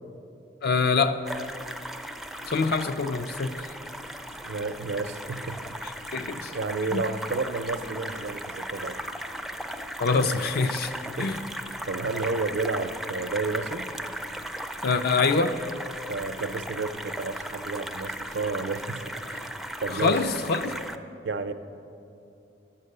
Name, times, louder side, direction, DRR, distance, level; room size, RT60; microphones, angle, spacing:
voice 1, 0.6-1.3 2.5-3.7 5.8-6.5 6.9-7.0 10.0-10.9 11.2-11.4 14.8-15.6 19.9-20.7, left 4 dB, 60° left, 0.4 m, -25 dB
sound 1, 1.2-21.0, right 1 dB, ahead, 0.4 m, -37 dB
voice 2, 4.4-6.0 6.5-9.0 11.1-11.5 11.9-13.9 16.1-19.5 19.8-20.2 21.2-21.5, right 3 dB, 80° right, 0.6 m, -31 dB
11.0 x 7.6 x 6.6 m
head